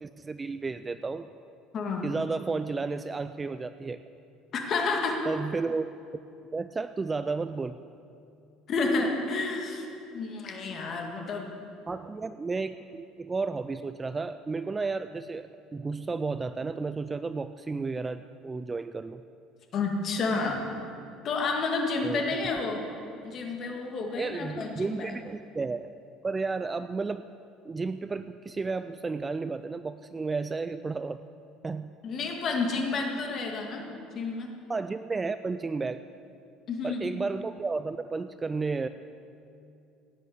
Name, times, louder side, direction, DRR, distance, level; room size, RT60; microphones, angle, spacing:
voice 1, 0.0-1.3 2.0-4.0 5.3-5.9 6.5-7.8 11.9-19.2 22.0-22.2 24.2-25.9 26.2-27.3 27.7-31.2 31.6-31.9 34.7-36.0 36.8-38.9, right 4 dB, 15° right, 12 dB, 0.3 m, -32 dB
voice 2, 1.7-2.1 4.5-5.2 8.7-9.9 10.1-11.5 19.7-20.6 21.2-22.8 23.2-25.1 32.0-33.9 34.1-34.5 36.7-37.1, left 3 dB, 35° left, 2 dB, 2.1 m, -30 dB
16.5 x 9.7 x 8.0 m, 2.6 s
cardioid pair, 165°, 0 cm